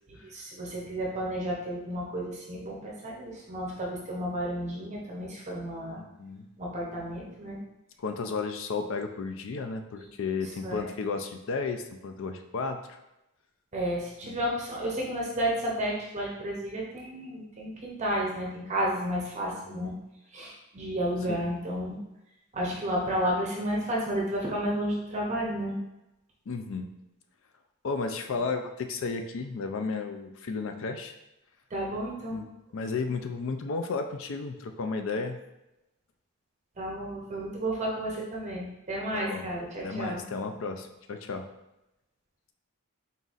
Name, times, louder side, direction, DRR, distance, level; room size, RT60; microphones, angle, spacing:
voice 1, 0.1-6.0 6.6-7.6 10.0-10.1 10.6-10.9 13.7-19.9 20.3-22.0 22.5-25.8 31.7-32.4 36.8-40.2, right 1 dB, 30° right, -3 dB, 0.6 m, -32 dB
voice 2, 5.9-6.5 8.0-13.0 14.2-14.4 19.5-19.9 21.3-21.5 26.5-26.9 27.8-31.1 32.3-32.5 32.7-35.4 39.1-39.5 39.8-41.4, left 4 dB, 60° left, 6 dB, 0.4 m, -33 dB
4.1 x 3.9 x 2.4 m, 0.92 s
head